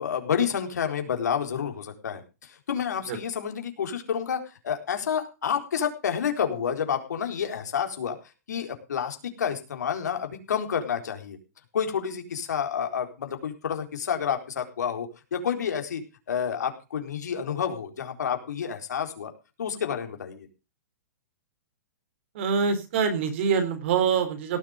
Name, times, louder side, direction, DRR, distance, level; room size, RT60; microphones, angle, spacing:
voice 1, 0.0-8.2 8.5-11.4 11.7-19.3 19.6-20.5, left 7 dB, 85° left, 5 dB, 4.1 m, -29 dB
voice 2, 22.3-24.6, right 6 dB, 45° right, 9 dB, 3.4 m, -25 dB
17.5 x 7.4 x 6.6 m, 0.31 s
hypercardioid pair, 165°, 9 cm